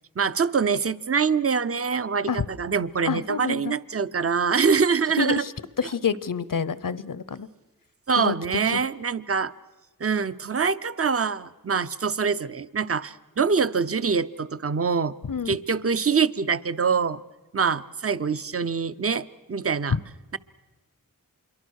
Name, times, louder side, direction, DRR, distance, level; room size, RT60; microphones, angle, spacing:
voice 1, 0.2-5.4 8.1-9.5 10.0-15.1 15.5-17.2 17.5-20.0, right 5 dB, 40° right, 15 dB, 0.7 m, -24 dB
voice 2, 3.1-3.7 5.2-5.5 5.8-7.5 8.2-8.3 8.7-8.8 15.3-15.6 19.9-20.0, left 6 dB, 65° left, 18 dB, 0.8 m, -27 dB
26.5 x 23.0 x 6.4 m, 1.1 s
wide cardioid pair, 55°, 35 cm